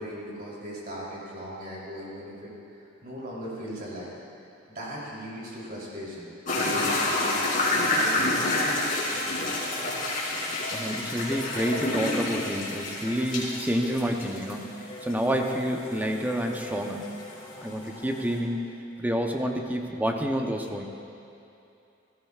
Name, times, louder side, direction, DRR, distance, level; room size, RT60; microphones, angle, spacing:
voice 1, 0.0-2.5 3.0-4.1 4.7-9.5, equal, 45° right, -6 dB, 3.3 m, -38 dB
sound 1, 6.4-18.4, left 2 dB, 45° left, 3.2 m, -30 dB
voice 2, 10.7-14.7 15.0-17.1 17.6-18.6 19.0-20.9, equal, 10° right, 2 dB, 0.8 m, -28 dB
17.5 x 14.0 x 2.4 m, 2.7 s
head